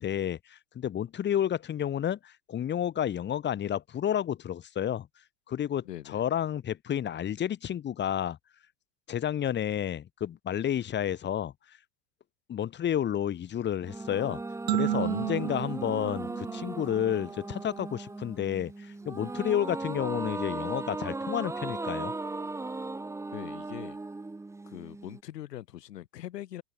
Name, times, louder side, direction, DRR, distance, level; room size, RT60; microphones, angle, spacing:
voice 1, 0.0-5.1 5.5-8.4 9.1-11.5 12.5-14.4 14.7-22.1, left 10 dB, 20° left, 5.6 m, -31 dB
voice 2, 5.8-6.3 14.9-15.6 23.3-24.0 24.6-26.6, left 13 dB, 75° left, 6.4 m, -42 dB
sound 1, 13.8-25.2, right 3 dB, 5° right, 3.4 m, -37 dB
sound 2, 14.7-17.3, right 13 dB, 85° right, 1.5 m, -32 dB
open air
supercardioid pair, 145°, 49 cm